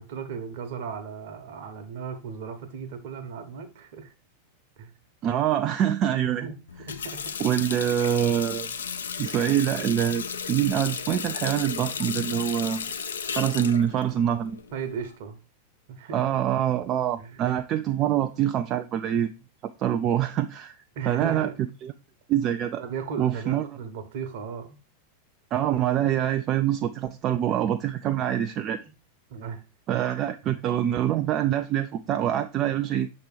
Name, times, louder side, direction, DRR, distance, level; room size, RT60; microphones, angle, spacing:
voice 1, 0.0-4.1 4.8-4.9 6.2-6.6 6.9-7.4 14.7-15.4 15.9-16.3 17.2-17.5 20.9-21.5 22.8-24.8 28.8-28.9 29.3-29.6 29.9-30.0, right 6 dB, 50° right, 1.0 m, -36 dB
voice 2, 5.2-6.5 7.4-8.7 9.2-12.9 13.3-14.6 16.1-19.3 19.8-21.5 21.8-21.9 22.3-22.8 23.2-23.6 25.5-28.8 29.9-33.1, right 11 dB, 35° right, 0.3 m, -25 dB
Water tap faucet, 6.7-15.1, left 6 dB, 65° left, 0.5 m, -34 dB
6.6 x 3.0 x 4.9 m
figure-of-eight pair, 90°, 0 cm